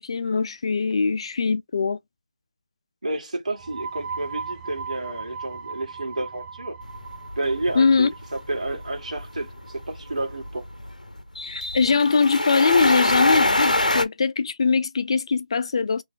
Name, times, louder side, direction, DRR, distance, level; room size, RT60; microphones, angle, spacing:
voice 1, 0.0-2.0 7.8-8.1 11.4-16.0, left 5 dB, 45° left, 0.4 m, -22 dB
voice 2, 3.0-6.8 7.4-10.7, right 2 dB, 65° right, 1.8 m, -30 dB
sound 1, 3.5-10.9, right 5 dB, 10° right, 0.6 m, -39 dB
sound 2, 6.8-14.1, left 1 dB, 90° left, 0.8 m, -25 dB
3.4 x 2.3 x 3.7 m
figure-of-eight pair, 160°, 4 cm